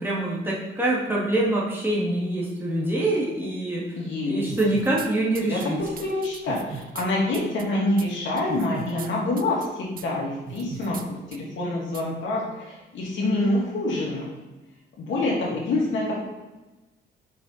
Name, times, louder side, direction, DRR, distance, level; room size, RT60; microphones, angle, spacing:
voice 1, 0.0-4.0 4.2-5.8, right 1 dB, 10° right, -5 dB, 2.1 m, -25 dB
voice 2, 4.0-4.5 5.4-5.6 6.0-11.0 11.3-14.2 15.0-16.2, left 2 dB, 70° left, -3 dB, 2.2 m, -26 dB
sound 1, 4.5-5.1 5.3-7.1 7.3-7.6 8.0-8.1 8.4-9.1 9.4-9.7 10.0-10.1 10.5-11.0 11.3-11.4 11.9-12.0, right 7 dB, 45° right, 0.5 m, -38 dB
5.8 x 4.8 x 4.1 m, 1.1 s
cardioid pair, 90°, 20 cm